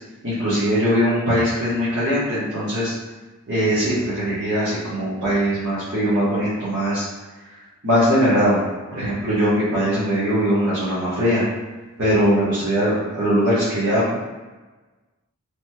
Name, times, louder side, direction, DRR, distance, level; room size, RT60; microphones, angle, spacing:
voice 1, 0.2-2.9 3.5-7.0 7.8-8.6 8.9-11.4 12.0-14.2, equal, 55° right, -12 dB, 1.0 m, -21 dB
2.9 x 2.9 x 2.2 m, 1.2 s
head